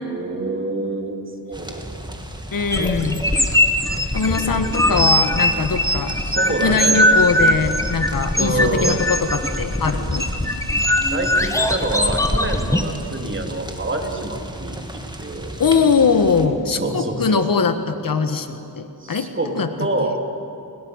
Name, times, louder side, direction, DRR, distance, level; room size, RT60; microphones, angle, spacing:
voice 1, 0.0-2.2 3.9-4.6 4.8-5.0 6.2-7.2 8.4-9.0 11.0-15.5 16.7-17.4 19.0-19.5 19.8-20.2, right 2 dB, 30° right, 2 dB, 3.6 m, -27 dB
sound 1, 1.5-16.5, right 1 dB, 10° right, 2.6 m, -35 dB
voice 2, 2.5-3.2 4.1-6.2 6.6-10.3 15.6-19.3 19.5-19.7, left 5 dB, 55° left, 8 dB, 1.7 m, -21 dB
sound 2, 2.7-12.8, left 1 dB, 10° left, 1.8 m, -20 dB
29.5 x 21.5 x 6.6 m, 2.7 s
cardioid pair, 80°, 39 cm